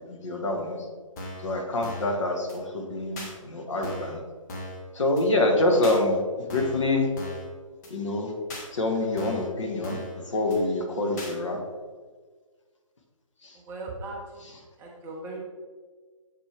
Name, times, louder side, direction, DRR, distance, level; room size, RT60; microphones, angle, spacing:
voice 1, 0.1-0.8 1.4-4.2 4.9-7.1 7.9-8.3 8.7-10.0 10.3-11.6 13.4-13.6, left 2 dB, 60° left, 2 dB, 1.3 m, -26 dB
sound 1, 1.2-1.5 1.8-2.1 2.5-2.6 3.2-3.3 3.8-4.2 4.5-4.8 5.2-5.3 5.8-6.0 6.5-6.8 7.2-7.5 7.8-7.9 8.5-8.7 9.2-9.5 9.8-10.2 10.5-10.6 11.2-11.3, left 1 dB, 30° left, 1.1 m, -38 dB
voice 2, 13.5-14.4 14.8-15.4, right 2 dB, 10° right, -2 dB, 0.7 m, -38 dB
7.3 x 4.5 x 3.3 m, 1.5 s
figure-of-eight pair, 140°, 18 cm